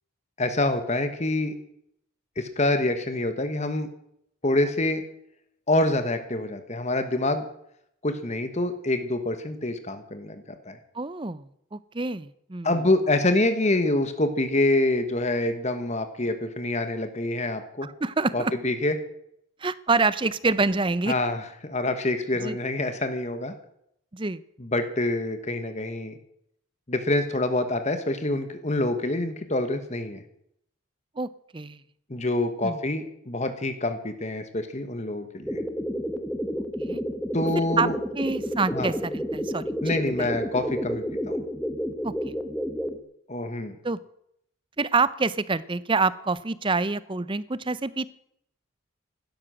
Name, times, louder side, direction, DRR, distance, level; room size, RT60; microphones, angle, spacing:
voice 1, 0.4-1.5 2.4-3.9 4.4-5.0 5.7-7.4 8.0-10.8 12.6-17.9 18.3-19.0 21.1-23.5 24.6-26.1 26.9-30.2 32.1-35.6 37.3-37.9 38.7-38.9 39.8-41.4 43.3-43.8, left 2 dB, 30° left, 9 dB, 1.3 m, -26 dB
voice 2, 10.9-12.8 17.8-18.5 19.6-21.1 22.4-22.6 24.1-24.4 31.2-31.8 32.6-32.8 36.8-37.0 37.8-37.9 38.1-40.3 42.0-42.3 43.8-44.0 44.8-48.1, right 3 dB, 25° right, 17 dB, 0.6 m, -27 dB
sound 1, 35.4-43.0, equal, 5° left, 1.2 m, -30 dB
16.0 x 12.5 x 6.4 m, 0.73 s
head